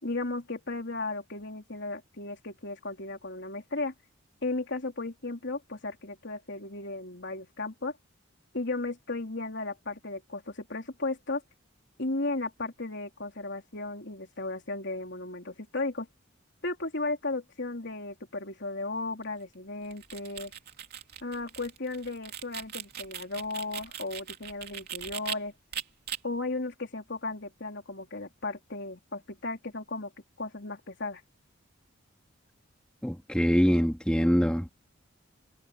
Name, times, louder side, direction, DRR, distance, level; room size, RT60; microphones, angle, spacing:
voice 1, 0.0-3.9 4.4-8.0 8.5-11.4 12.0-16.1 16.6-20.5 21.2-25.5 26.2-30.1 30.4-31.2, left 2 dB, 60° left, 3.7 m, -35 dB
sound 1, 19.8-25.4 25.7-26.2, right 9 dB, 50° right, 3.2 m, -39 dB
voice 2, 33.0-34.7, equal, 5° left, 3.1 m, -24 dB
head